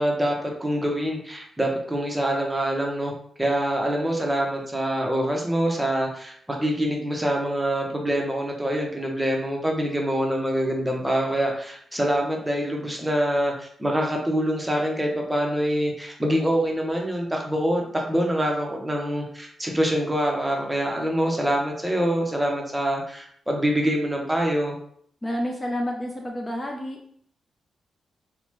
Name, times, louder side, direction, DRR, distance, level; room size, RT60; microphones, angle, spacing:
voice 1, 0.0-3.1 3.4-24.8, equal, 10° right, 0 dB, 0.7 m, -25 dB
voice 2, 25.2-27.0, equal, 20° left, 1 dB, 0.4 m, -29 dB
3.0 x 2.0 x 3.0 m, 0.64 s
cardioid pair, 65°, 0 cm